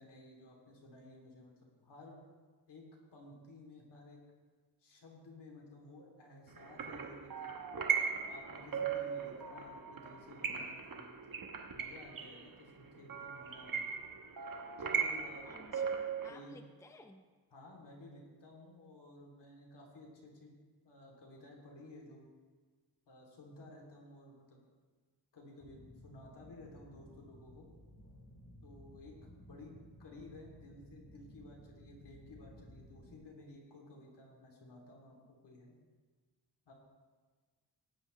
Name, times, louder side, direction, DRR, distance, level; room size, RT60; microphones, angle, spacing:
voice 1, 0.0-2.2 2.7-4.2 4.8-7.5 8.3-11.4 11.7-13.9 14.8-15.5 16.3-16.6 17.5-20.5 20.8-22.3 23.1-24.6 25.3-27.7 28.6-35.7 36.7-36.8, left 2 dB, 75° left, -2 dB, 3.0 m, -55 dB
sound 1, 6.5-16.3, right 6 dB, 55° right, 1.0 m, -38 dB
voice 2, 15.4-17.2, left 2 dB, 5° left, 5 dB, 0.6 m, -56 dB
sound 2, 25.6-33.1, equal, 45° left, 2.2 m, -57 dB
18.0 x 9.5 x 3.2 m, 1.4 s
wide cardioid pair, 130°, 41 cm